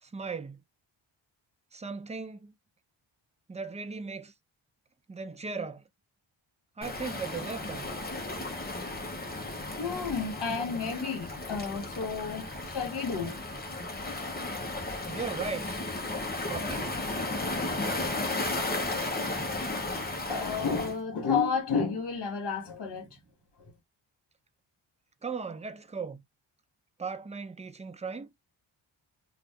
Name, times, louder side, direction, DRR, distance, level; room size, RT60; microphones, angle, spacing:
voice 1, 0.0-0.6 1.7-2.5 3.5-4.3 5.1-5.8 6.8-7.8 15.1-15.8 16.5-16.9 25.2-26.2 27.0-28.3, right 4 dB, 15° right, 0.4 m, -37 dB
Waves surf, 6.8-21.0, left 2 dB, 20° left, 0.8 m, -34 dB
voice 2, 9.8-14.1 20.3-23.1 23.6-23.7, left 5 dB, 55° left, 1.4 m, -32 dB
2.6 x 2.4 x 3.5 m
wide cardioid pair, 100°, 48 cm